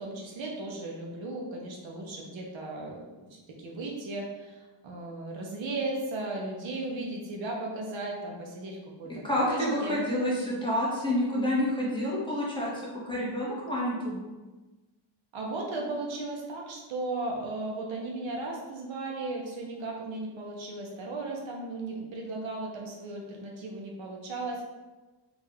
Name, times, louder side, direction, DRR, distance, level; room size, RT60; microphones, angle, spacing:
voice 1, 0.0-10.0 15.3-24.6, right 2 dB, 75° right, -1 dB, 0.8 m, -36 dB
voice 2, 9.2-14.3, left 1 dB, 10° left, -7 dB, 1.0 m, -29 dB
3.5 x 2.5 x 3.4 m, 1.2 s
wide cardioid pair, 130°, 46 cm